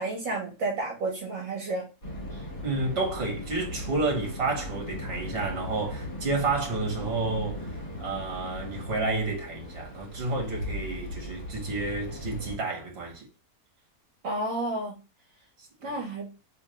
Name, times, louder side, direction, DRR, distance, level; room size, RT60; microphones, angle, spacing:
voice 1, 0.0-1.9 14.2-15.0 15.8-16.3, right 2 dB, 70° right, 1.4 m, -31 dB
sound 1, 2.0-12.6, left 1 dB, 40° left, 2.1 m, -38 dB
voice 2, 2.3-7.7 8.0-13.3 15.8-15.9, right 3 dB, 45° right, 1.7 m, -30 dB
3.5 x 3.2 x 3.2 m
omnidirectional pair, 1.5 m